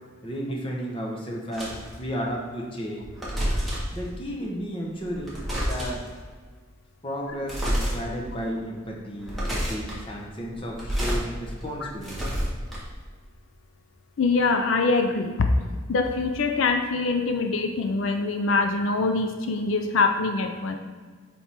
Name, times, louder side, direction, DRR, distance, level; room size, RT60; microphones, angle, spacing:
voice 1, 0.2-3.1 3.9-6.1 7.0-12.1, equal, 25° left, -1 dB, 0.9 m, -33 dB
sound 1, 1.5-1.9 3.0-4.0 5.0-6.1 7.4-7.9 8.4-8.5 9.1-10.0 10.6-11.2 11.6-13.0, equal, ahead, 1.4 m, -28 dB
voice 2, 14.2-20.8, left 3 dB, 85° left, 6 dB, 0.5 m, -24 dB
7.2 x 4.4 x 3.4 m, 1.5 s
head